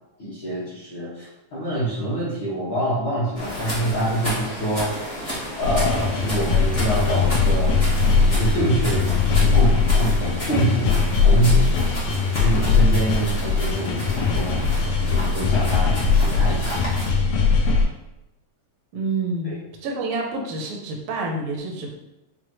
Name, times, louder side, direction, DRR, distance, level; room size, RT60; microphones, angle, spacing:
voice 1, 0.2-4.9 5.6-7.7 8.2-11.7 12.4-14.7 15.0-16.9 19.4-19.5, right 1 dB, 60° left, -10 dB, 1.3 m, -26 dB
sound 1, 3.3-17.1, equal, 45° left, 0.4 m, -32 dB
sound 2, 5.6-17.8, left 4 dB, 75° left, 1.6 m, -20 dB
voice 2, 18.9-21.9, right 3 dB, 80° right, 0 dB, 1.3 m, -28 dB
6.1 x 2.2 x 3.0 m, 0.95 s
omnidirectional pair, 3.5 m